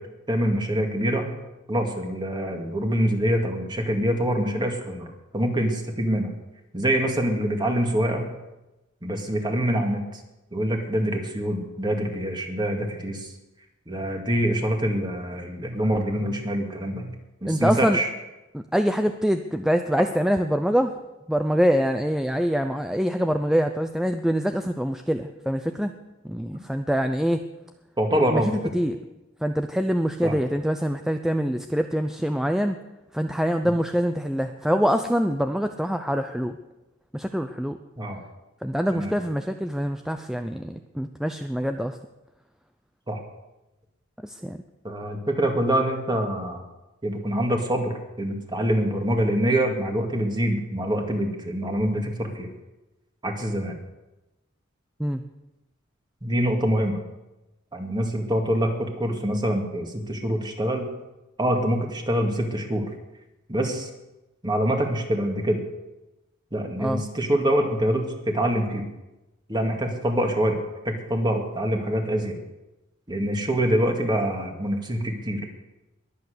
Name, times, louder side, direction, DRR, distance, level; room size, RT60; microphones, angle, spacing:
voice 1, 0.3-1.3 1.7-6.3 6.7-8.3 9.0-10.2 10.5-13.3 13.9-17.2 17.4-18.1 28.0-28.5 30.2-30.4 38.0-38.2 38.9-39.1 43.1-43.2 44.8-46.6 47.0-52.5 53.2-53.7 56.2-57.0 57.7-60.9 61.4-62.9 63.5-63.9 64.4-65.6 66.5-68.8 69.5-72.4 73.1-75.5, equal, 20° right, 3 dB, 2.2 m, -25 dB
voice 2, 17.5-18.0 18.5-20.9 21.3-25.9 26.2-27.4 28.3-29.0 29.4-32.8 33.1-36.6 37.1-37.8 38.6-42.0 44.2-44.6 55.0-55.2 66.8-67.0, equal, ahead, 7 dB, 0.6 m, -24 dB
21.5 x 8.4 x 6.8 m, 1.0 s
head